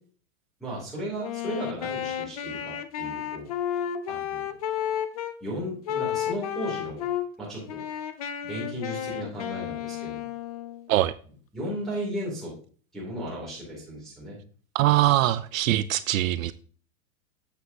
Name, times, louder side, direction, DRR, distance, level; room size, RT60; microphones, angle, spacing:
voice 1, 0.6-3.5 3.7-4.5 5.4-7.1 7.4-7.8 8.4-10.3 11.5-12.5 12.9-14.4, equal, ahead, 2.8 m, -35 dB
Wind instrument woodwind instrument, 1.2-5.4 5.9-7.3 7.7-10.9, left 10 dB, 30° left, 0.3 m, -32 dB
voice 2, 14.7-16.5, right 14 dB, 65° right, 0.6 m, -22 dB
8.3 x 7.8 x 2.8 m
supercardioid pair, 155°, 44 cm